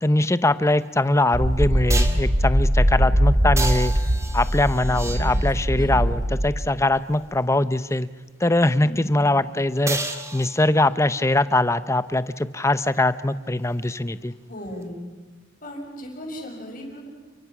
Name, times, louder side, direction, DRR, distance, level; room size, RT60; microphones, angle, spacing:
voice 1, 0.0-3.9 4.3-8.1 8.4-10.0 10.3-14.3, left 2 dB, 15° left, 14 dB, 0.7 m, -22 dB
sound 1, 0.8-0.9 1.9-2.3 3.6-5.7 9.9-11.0 14.8-14.9, right 3 dB, 15° right, 2.0 m, -31 dB
sound 2, 1.3-6.7, equal, 75° right, 3.0 m, -21 dB
voice 2, 4.8-5.4 5.6-6.0 8.8-9.2 14.2-15.1 15.6-17.1, equal, 45° left, 1 dB, 6.5 m, -37 dB
30.0 x 23.5 x 6.1 m, 1.3 s
head